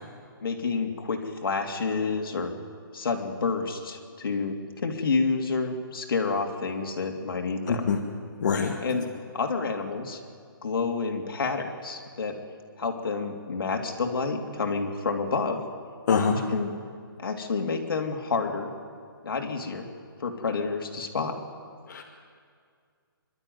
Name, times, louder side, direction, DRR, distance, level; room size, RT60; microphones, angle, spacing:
voice 1, 0.4-2.5 2.9-7.9 8.8-9.1 9.3-10.2 10.6-12.4 12.8-15.6 16.2-16.7 17.2-18.7 19.2-19.9 20.2-21.4, left 4 dB, 70° left, 3 dB, 2.8 m, -29 dB
voice 2, 7.7-8.0 8.4-8.7 16.1-16.4 21.9-22.0, left 5 dB, 50° left, 0 dB, 1.7 m, -24 dB
26.0 x 12.5 x 9.4 m, 2.1 s
hypercardioid pair, 170°, 12 cm